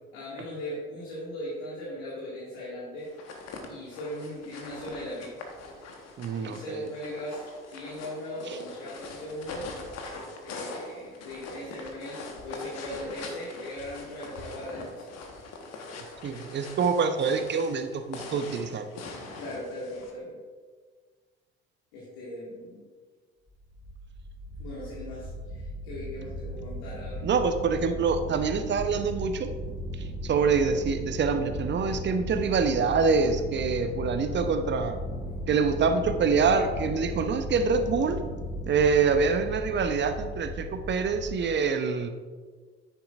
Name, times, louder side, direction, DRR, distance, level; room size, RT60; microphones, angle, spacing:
voice 1, 0.1-3.1 3.7-5.3 6.4-9.7 10.4-15.2 15.7-15.8 19.4-20.4 21.9-22.8 24.6-27.2, left 1 dB, 65° left, -6 dB, 2.2 m, -38 dB
sound 1, 3.0-20.1, left 3 dB, 50° left, 1.5 m, -43 dB
voice 2, 6.2-6.9 8.5-8.6 16.2-18.8 27.2-29.5 30.0-35.0 35.5-38.2 38.7-42.1, right 5 dB, 35° right, 8 dB, 0.9 m, -26 dB
sound 2, 23.5-41.4, equal, 20° left, 1.5 m, -36 dB
10.0 x 9.0 x 2.6 m, 1.5 s
figure-of-eight pair, 50°, 32 cm